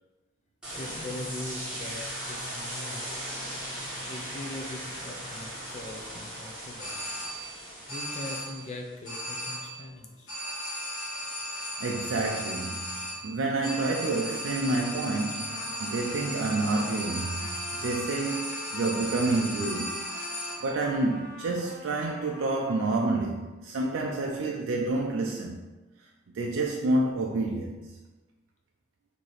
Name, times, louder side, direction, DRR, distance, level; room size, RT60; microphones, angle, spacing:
sound 1, 0.6-8.8, equal, 5° right, 1.2 m, -38 dB
voice 1, 0.8-3.2 4.1-7.0 7.9-10.3, left 2 dB, 35° left, 0.5 m, -41 dB
sound 2, 6.8-7.6 7.9-8.7 9.0-9.9 10.3-20.8, equal, 85° left, 1.4 m, -36 dB
voice 2, 11.5-20.1 20.6-25.6 26.3-27.9, right 2 dB, 80° right, 0.4 m, -29 dB
Trumpet, 15.5-23.3, equal, 50° right, 1.2 m, -45 dB
3.2 x 2.8 x 4.0 m
head